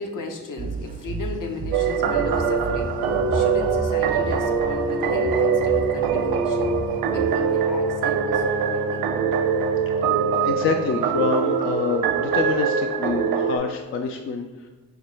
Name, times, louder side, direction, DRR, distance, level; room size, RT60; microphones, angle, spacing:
voice 1, 0.0-6.8 7.1-9.4, left 3 dB, 55° left, 3 dB, 0.8 m, -36 dB
sound 1, 0.6-8.0, right 4 dB, 20° right, 0.6 m, -34 dB
sound 2, 1.7-13.6, right 6 dB, 65° right, 0.5 m, -23 dB
sound 3, 2.0-11.2, left 2 dB, 85° left, 1.3 m, -37 dB
voice 2, 10.4-14.7, left 5 dB, 35° left, 4 dB, 0.4 m, -26 dB
4.7 x 2.2 x 3.1 m, 1.2 s
supercardioid pair, 50°, 38 cm